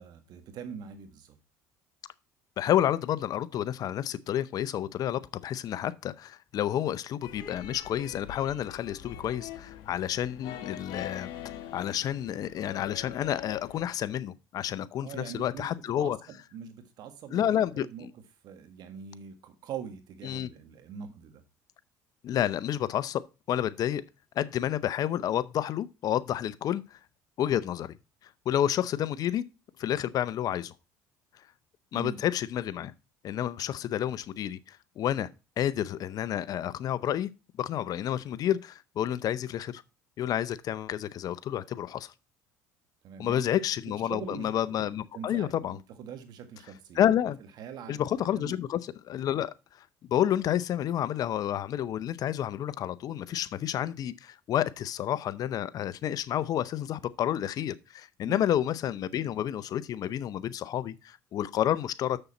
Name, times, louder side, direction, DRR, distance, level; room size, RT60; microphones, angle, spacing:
voice 1, 0.0-1.3 15.0-17.5 17.7-18.1 18.4-21.4 31.9-32.2 43.0-43.5 44.0-44.5 45.1-47.1 47.6-48.0 48.3-48.6 58.3-58.4, right 7 dB, 60° right, 1.6 m, -43 dB
voice 2, 2.6-11.3 11.7-16.2 17.3-18.1 20.2-20.5 22.2-24.0 24.4-27.0 27.4-27.9 28.5-29.4 29.8-30.7 31.9-32.9 33.2-35.3 35.6-37.3 37.6-39.8 40.2-42.1 43.2-45.8 46.9-47.4 47.9-49.5 50.1-62.2, left 11 dB, 50° left, 0.6 m, -30 dB
sound 1, 7.2-13.8, left 10 dB, 70° left, 1.3 m, -43 dB
7.1 x 6.7 x 4.2 m
supercardioid pair, 90°, 8 cm